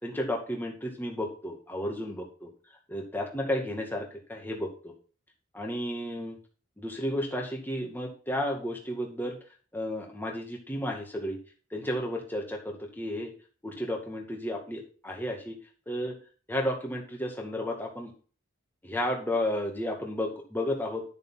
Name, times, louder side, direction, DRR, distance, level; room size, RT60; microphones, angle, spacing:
voice 1, 0.0-2.5 2.9-4.9 5.5-6.4 6.8-9.4 9.7-11.4 11.7-13.3 13.6-15.5 15.9-16.2 16.5-18.1 18.8-21.0, left 1 dB, 10° left, 1 dB, 2.1 m, -32 dB
11.0 x 6.8 x 4.1 m, 0.38 s
head